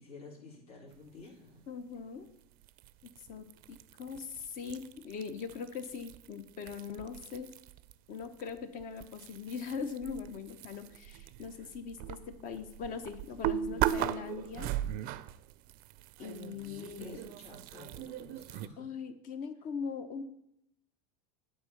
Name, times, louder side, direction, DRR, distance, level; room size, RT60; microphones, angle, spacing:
voice 1, 0.0-1.7 16.5-18.9, left 3 dB, 80° left, -3 dB, 2.5 m, -52 dB
voice 2, 1.7-2.3 3.3-7.5 8.1-14.7 16.2-17.2 18.8-20.2, left 6 dB, 45° left, 10 dB, 0.9 m, -41 dB
sound 1, 2.6-7.9 8.2-18.7, right 12 dB, 50° right, 0.4 m, -39 dB
8.8 x 3.9 x 5.8 m, 0.76 s
supercardioid pair, 110°, 19 cm